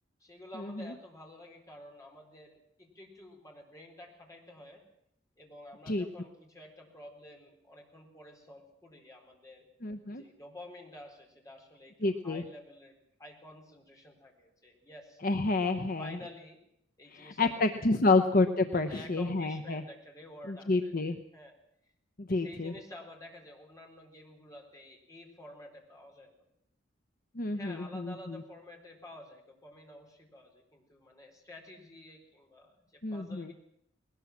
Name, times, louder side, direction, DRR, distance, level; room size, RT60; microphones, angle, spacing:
voice 1, 0.2-4.8 5.4-9.7 10.1-15.2 15.7-16.6 17.0-17.7 18.0-18.3 18.7-21.5 22.3-26.3 27.5-33.5, left 1 dB, 15° left, 0 dB, 4.3 m, -51 dB
voice 2, 9.8-10.2 12.0-12.4 15.2-16.2 17.1-19.8 20.5-21.2 22.2-22.7 27.4-28.4 33.0-33.5, left 3 dB, 45° left, 7 dB, 0.9 m, -29 dB
20.0 x 19.0 x 7.4 m, 0.74 s
head